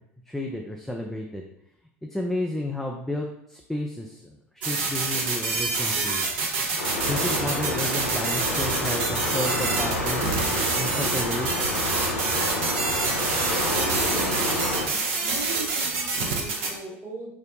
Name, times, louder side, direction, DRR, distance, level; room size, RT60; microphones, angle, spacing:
voice 1, 0.3-1.4 2.1-6.4 7.1-10.4 10.8-11.7, left 1 dB, ahead, 0 dB, 0.4 m, -32 dB
sound 1, 4.6-16.7, right 3 dB, 60° right, 0.7 m, -27 dB
sound 2, 6.8-14.9, left 1 dB, 85° left, 0.6 m, -29 dB
voice 2, 13.3-14.7 15.2-17.3, right 2 dB, 35° right, -3 dB, 1.4 m, -39 dB
5.3 x 2.1 x 2.6 m, 0.75 s
figure-of-eight pair, 70°, 7 cm